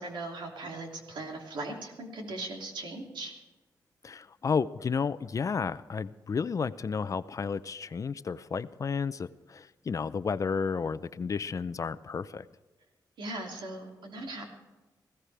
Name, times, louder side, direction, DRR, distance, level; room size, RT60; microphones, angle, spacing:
voice 1, 0.0-3.3 13.2-14.4, right 2 dB, 85° right, 1 dB, 3.0 m, -39 dB
voice 2, 4.0-12.5, left 5 dB, 45° left, 15 dB, 0.6 m, -32 dB
19.5 x 16.0 x 3.4 m, 1.2 s
cardioid pair, 95°, 8 cm